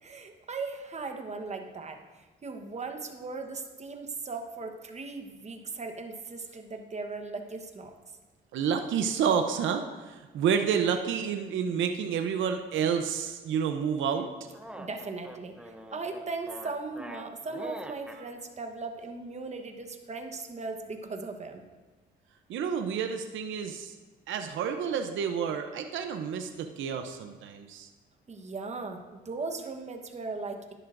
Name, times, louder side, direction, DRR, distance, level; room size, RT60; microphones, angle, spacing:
voice 1, 0.0-7.9 14.8-21.6 28.3-30.6, right 3 dB, 35° right, 4 dB, 1.1 m, -38 dB
voice 2, 8.5-14.3 22.5-23.9 24.3-27.9, right 7 dB, 75° right, 6 dB, 0.7 m, -29 dB
sound 1, 14.2-18.2, right 1 dB, 5° right, 0.7 m, -44 dB
11.0 x 10.5 x 2.6 m, 1.3 s
cardioid pair, 90°, 20 cm